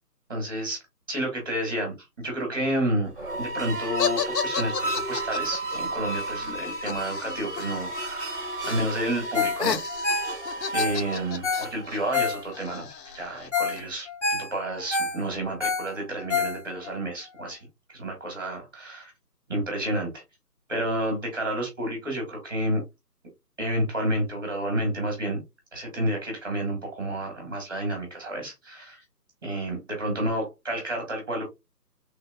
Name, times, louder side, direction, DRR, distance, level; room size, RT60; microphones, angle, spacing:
voice 1, 0.3-0.8 1.1-3.1 3.4-10.3 10.7-17.6 17.9-19.1 19.5-20.2 20.7-22.8 23.6-25.4 25.7-29.0 29.4-31.4, right 1 dB, 15° right, 1.0 m, -30 dB
sound 1, 3.1-12.5, right 2 dB, 35° right, 0.6 m, -33 dB
sound 2, 4.0-8.0 8.2-8.9 9.2-13.8, left 7 dB, 80° left, 0.6 m, -33 dB
Ringtone, 9.3-9.6 9.9-12.8 13.2-13.3 13.5-13.8 14.1-16.9 17.4-17.5, left 4 dB, 45° left, 1.0 m, -28 dB
3.4 x 2.9 x 2.2 m
hypercardioid pair, 170°, 49 cm